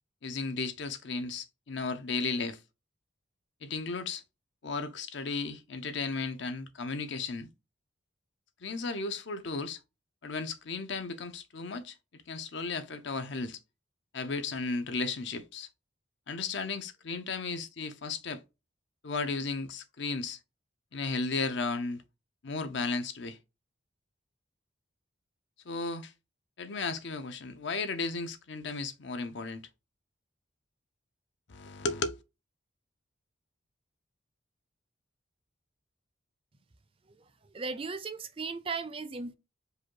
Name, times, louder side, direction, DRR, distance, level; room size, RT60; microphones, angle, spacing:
voice 1, 0.2-2.6 3.6-4.2 4.6-7.5 8.6-9.8 10.2-13.6 14.1-15.7 16.3-18.4 19.0-20.4 20.9-22.0 22.4-23.4 25.6-26.1 26.6-29.6 31.5-32.2, left 4 dB, 65° left, 0.6 m, -34 dB
voice 2, 37.5-39.3, right 4 dB, 30° right, 0.4 m, -36 dB
5.0 x 2.2 x 4.5 m
head